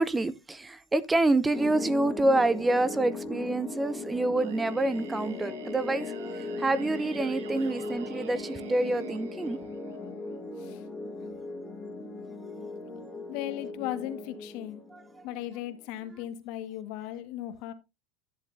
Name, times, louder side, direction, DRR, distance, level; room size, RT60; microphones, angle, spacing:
voice 1, 0.0-9.6 14.9-15.2, right 2 dB, 10° right, 0.5 m, -27 dB
sound 1, 1.5-15.9, left 3 dB, 15° left, 1.6 m, -38 dB
Singing, 4.4-10.3, right 10 dB, 85° right, 1.5 m, -47 dB
voice 2, 13.3-14.8 15.2-17.7, left 13 dB, 55° left, 1.6 m, -37 dB
11.0 x 10.0 x 2.7 m
supercardioid pair, 135°, 0 cm